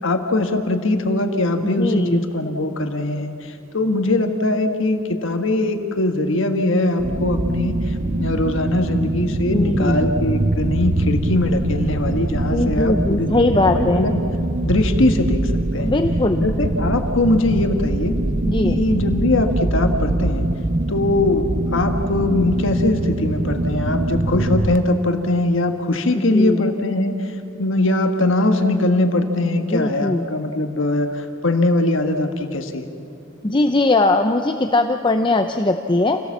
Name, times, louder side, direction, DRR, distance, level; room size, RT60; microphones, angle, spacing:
voice 1, 0.0-14.2 14.6-15.9 16.4-18.1 18.6-20.5 20.9-21.5 21.7-32.9, left 2 dB, 65° left, 5 dB, 1.5 m, -21 dB
voice 2, 1.6-2.2 9.5-10.1 12.5-14.1 15.8-16.5 18.5-18.8 26.1-26.7 29.7-30.3 33.4-36.2, left 2 dB, 25° left, 6 dB, 0.7 m, -20 dB
sound 1, 7.0-24.8, right 2 dB, 40° right, 0.7 m, -23 dB
28.0 x 17.5 x 7.3 m, 2.6 s
head